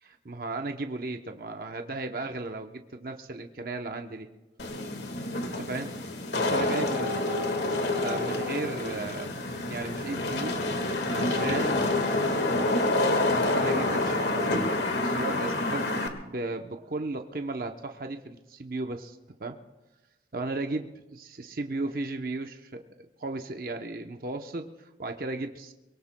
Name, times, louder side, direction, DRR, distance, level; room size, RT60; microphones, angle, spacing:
voice 1, 0.0-4.3 5.4-5.9 6.3-7.1 7.6-7.7 8.0-9.3 9.6-10.7 11.1-12.0 13.5-19.6 20.3-22.8 23.2-25.7, right 2 dB, 55° right, 5 dB, 0.8 m, -35 dB
Wind / Rain, 4.6-16.1, left 2 dB, 80° left, 1.6 m, -28 dB
23.5 x 22.5 x 2.2 m, 1.0 s
head